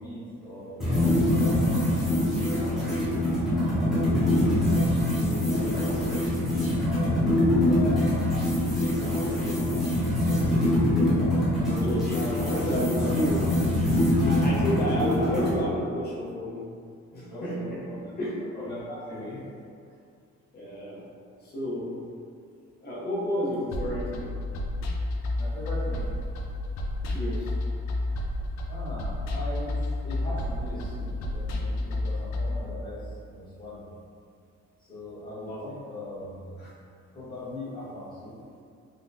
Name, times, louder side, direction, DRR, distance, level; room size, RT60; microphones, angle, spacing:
voice 1, 0.0-4.5 5.1-6.6 7.0-10.5 11.5-12.5 12.9-13.1 17.3-18.1 18.5-19.4 25.4-26.1 28.7-29.7 30.0-33.9 34.8-36.6 37.1-38.3, left 1 dB, 15° left, -11 dB, 1.0 m, -40 dB
sound 1, 0.8-15.6, left 1 dB, ahead, 0.5 m, -24 dB
voice 2, 11.7-12.2 12.4-13.6 14.2-16.7 17.1-18.5 19.1-19.3 20.5-21.0 21.4-22.0 22.8-24.6 27.0-27.6 35.3-35.8 36.6-36.7 38.4-38.6, equal, 35° left, -7 dB, 0.7 m, -32 dB
sound 2, 23.7-32.6, left 1 dB, 70° left, 0.4 m, -30 dB
3.6 x 2.1 x 2.7 m, 2.3 s
cardioid pair, 180°, 29 cm